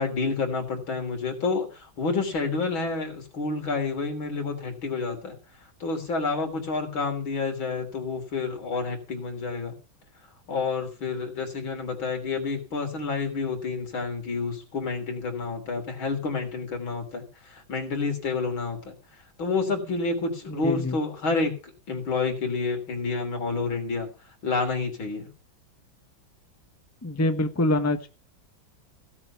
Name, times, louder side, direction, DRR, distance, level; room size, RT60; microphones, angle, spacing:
voice 1, 0.0-5.4 5.8-9.7 10.5-18.9 19.4-24.1 24.4-25.3, left 4 dB, 80° left, 4 dB, 4.2 m, -29 dB
voice 2, 20.5-21.0 27.0-28.1, left 2 dB, 10° left, 8 dB, 0.8 m, -25 dB
16.5 x 7.8 x 5.9 m, 0.32 s
omnidirectional pair, 2.2 m